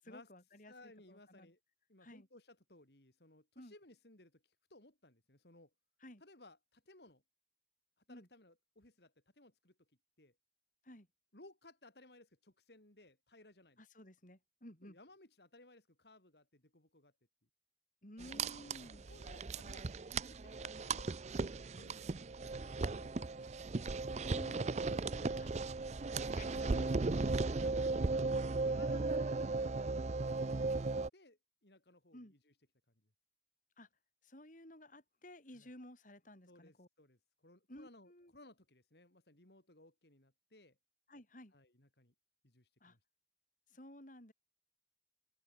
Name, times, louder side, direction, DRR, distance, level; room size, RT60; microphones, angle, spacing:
voice 1, 0.0-1.5 2.0-2.3 3.6-3.7 6.0-6.2 8.1-8.3 10.8-11.1 13.8-15.0 18.0-19.0 24.3-25.5 26.1-27.1 28.9-29.1 32.1-32.3 33.8-33.9 34.2-36.9 37.7-38.3 41.1-41.5 42.8-43.0 43.7-44.3, left 1 dB, 50° left, 7.0 m, -55 dB
voice 2, 0.7-1.6 1.9-5.7 6.2-7.2 8.1-9.7 10.2-10.3 11.3-13.8 14.8-17.1 18.9-19.9 20.3-23.5 26.2-28.2 28.7-29.9 30.2-30.9 31.1-32.5 35.5-35.7 36.5-40.8 41.5-42.1 42.4-43.0, left 2 dB, 65° left, 4.4 m, -62 dB
sound 1, 18.2-31.1, right 3 dB, 40° right, 0.5 m, -36 dB
open air
head